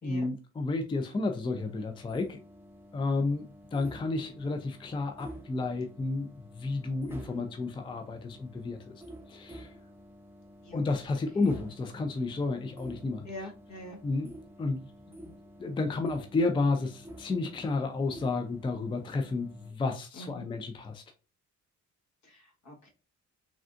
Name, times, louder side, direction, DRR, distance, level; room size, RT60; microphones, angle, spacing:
voice 1, 0.0-2.4 2.9-9.0 9.3-9.7 10.7-13.3 14.0-21.0, left 3 dB, 15° left, 0.4 m, -32 dB
sound 1, 1.6-19.7, equal, 10° right, 0.7 m, -50 dB
voice 2, 13.2-14.0 20.2-20.4 22.2-22.9, left 1 dB, 65° left, 1.5 m, -44 dB
3.5 x 2.4 x 2.5 m
cardioid pair, 90°, 30 cm